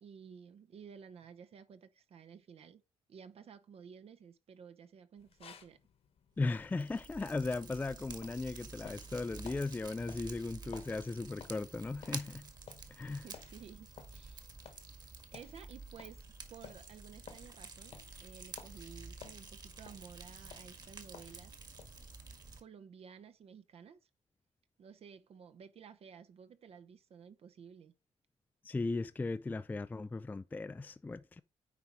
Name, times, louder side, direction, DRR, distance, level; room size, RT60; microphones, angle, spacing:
voice 1, 0.0-2.8 3.1-5.8 13.1-14.5 15.3-21.6 22.6-24.0 24.8-27.9, right 7 dB, 55° right, 0.8 m, -54 dB
sound 1, 5.2-22.3, left 6 dB, 55° left, 1.3 m, -57 dB
voice 2, 6.4-12.5 13.0-13.2 28.6-31.4, left 3 dB, 15° left, 0.3 m, -37 dB
Fire, 6.4-22.6, right 4 dB, 35° right, 1.7 m, -50 dB
9.4 x 4.7 x 3.9 m
cardioid pair, 120°, 12 cm